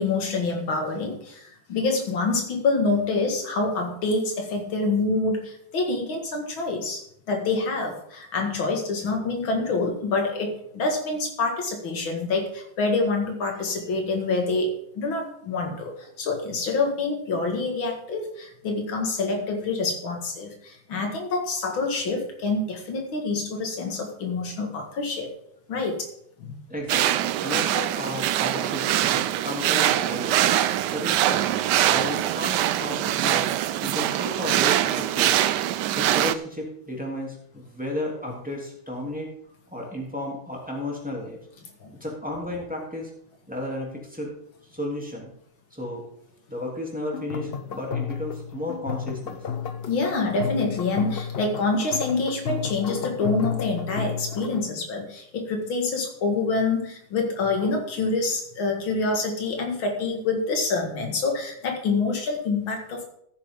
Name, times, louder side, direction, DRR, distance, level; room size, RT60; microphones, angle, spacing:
voice 1, 0.0-7.0 7.3-25.3 25.7-26.1 26.4-26.5 41.8-41.9 49.9-63.1, left 3 dB, 85° left, 2 dB, 2.7 m, -26 dB
voice 2, 26.7-30.5 30.9-31.4 31.8-33.4 33.8-35.4 35.9-39.3 39.7-41.4 42.0-43.1 43.5-44.3 44.7-45.3 45.7-46.0 46.5-49.4, left 1 dB, 5° right, -2 dB, 2.9 m, -33 dB
sound 1, 26.9-36.3, right 12 dB, 70° right, 1.1 m, -23 dB
sound 2, 47.1-54.7, left 7 dB, 60° left, 0.6 m, -32 dB
14.5 x 9.0 x 3.7 m, 0.70 s
omnidirectional pair, 2.1 m